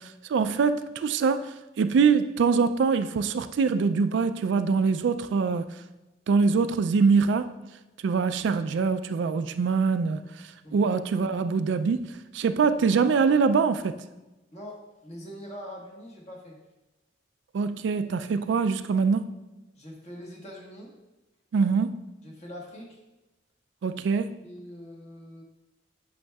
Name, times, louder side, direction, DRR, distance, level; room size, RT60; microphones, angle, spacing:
voice 1, 0.0-5.7 6.3-7.5 8.0-10.2 10.7-14.0 17.5-19.3 21.5-22.0 23.8-24.4, right 5 dB, 75° right, 0.3 m, -24 dB
voice 2, 10.6-11.0 14.5-16.6 19.7-20.9 22.2-23.0 23.9-24.0 24.4-25.4, equal, 35° left, 1.2 m, -43 dB
8.7 x 5.6 x 2.3 m
head